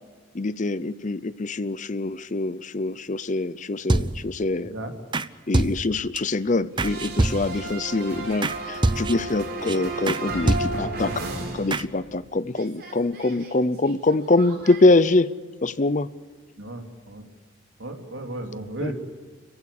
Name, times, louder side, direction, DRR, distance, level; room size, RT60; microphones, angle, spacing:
voice 1, 0.3-4.7 5.5-11.2 11.5-15.3 15.6-16.1 18.8-18.9, left 2 dB, 35° left, 17 dB, 0.6 m, -24 dB
sound 1, 3.9-4.4 5.1-5.3 5.5-6.2 6.8-7.7 8.4-8.6 8.8-9.4 9.7-9.8 10.1-10.2 10.5-11.0 11.7-11.8, right 2 dB, 25° right, 0.6 m, -25 dB
voice 2, 4.6-4.9 16.6-17.3 17.8-18.9, right 1 dB, 65° right, 4 dB, 3.2 m, -35 dB
sound 2, 6.8-12.2 12.5-14.8, right 2 dB, 50° right, 4.5 m, -34 dB
30.0 x 15.5 x 8.5 m, 1.5 s
head